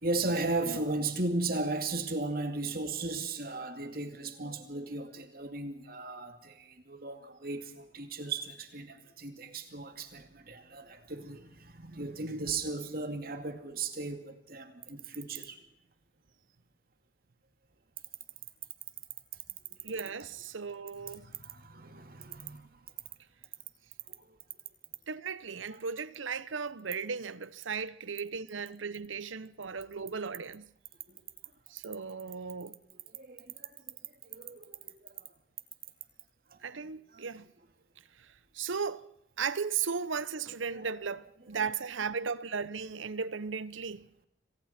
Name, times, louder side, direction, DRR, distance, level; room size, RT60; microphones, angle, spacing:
voice 1, 0.0-15.6 19.8-19.9 21.1-22.8 24.2-24.4 31.1-31.2 33.1-34.0 34.2-35.2 36.5-36.6 36.8-37.3 40.7-40.9, right 3 dB, 50° right, 2.3 m, -36 dB
voice 2, 19.8-21.3 25.1-30.7 31.7-32.8 36.6-37.5 38.2-38.3 38.5-39.1 39.4-44.1, right 5 dB, 90° right, 0.9 m, -36 dB
27.0 x 25.5 x 4.3 m
head